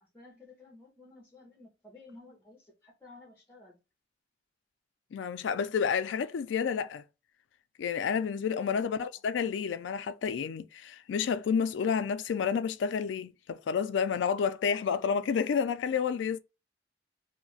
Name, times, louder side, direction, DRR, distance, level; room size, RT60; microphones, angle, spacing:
voice 1, 0.0-3.8 8.8-9.1, left 2 dB, 10° left, 0.7 m, -53 dB
voice 2, 5.1-7.0 7.8-16.4, left 6 dB, 85° left, 0.3 m, -30 dB
2.4 x 2.0 x 3.8 m
head